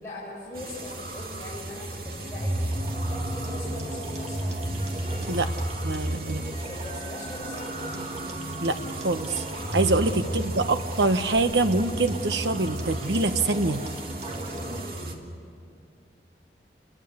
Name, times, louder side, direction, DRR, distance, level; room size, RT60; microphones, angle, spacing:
voice 1, 0.0-4.5 5.0-5.3 6.6-7.7 9.9-10.5 14.2-15.3, left 1 dB, 15° left, -8 dB, 5.3 m, -41 dB
sound 1, 0.5-15.1, right 1 dB, 55° right, 2.5 m, -33 dB
sound 2, 2.7-14.9, right 1 dB, 40° right, 2.5 m, -40 dB
voice 2, 5.8-6.4 8.6-9.4 9.7-13.8, right 2 dB, 80° right, 9 dB, 1.2 m, -25 dB
28.5 x 21.5 x 8.2 m, 2.4 s
head